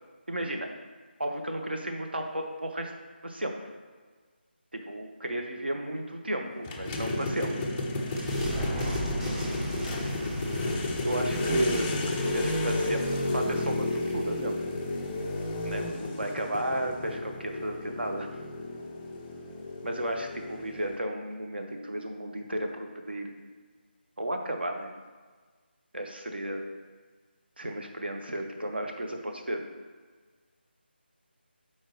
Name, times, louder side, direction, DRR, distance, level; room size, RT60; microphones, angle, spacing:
voice 1, 0.3-0.7 1.2-2.9 3.2-3.6 4.7-7.7 11.0-14.6 15.6-18.3 19.8-23.3 24.2-24.9 25.9-26.6 27.6-29.6, right 1 dB, 65° right, 3 dB, 1.2 m, -33 dB
sound 1, 6.6-21.0, left 2 dB, 10° left, 0.4 m, -32 dB
sound 2, 7.3-13.5, right 1 dB, 10° right, 1.0 m, -37 dB
11.0 x 4.5 x 3.1 m, 1.5 s
figure-of-eight pair, 160°, 6 cm